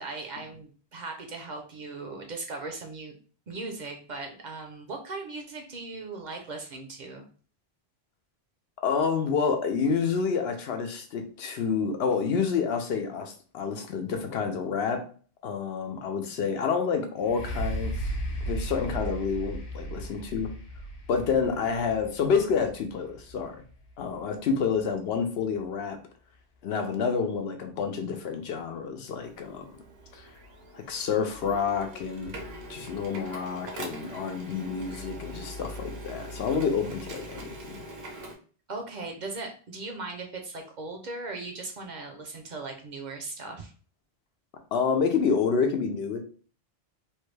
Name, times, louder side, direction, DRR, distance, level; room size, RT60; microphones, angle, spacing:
voice 1, 0.0-3.1 3.5-7.3 38.7-43.7, right 3 dB, 55° right, 3 dB, 0.6 m, -38 dB
voice 2, 8.8-15.0 15.4-18.1 18.4-20.5 21.1-23.6 24.0-26.0 26.6-29.7 30.1-30.3 30.7-32.3 32.7-37.8 44.7-46.2, left 6 dB, 80° left, 5 dB, 0.8 m, -28 dB
sound 1, 17.2-25.0 25.6-25.7, right 1 dB, 55° left, 0.8 m, -36 dB
Printer, 29.2-38.3, right 1 dB, 75° right, 0.9 m, -42 dB
3.1 x 2.2 x 3.2 m, 0.41 s
omnidirectional pair, 1.0 m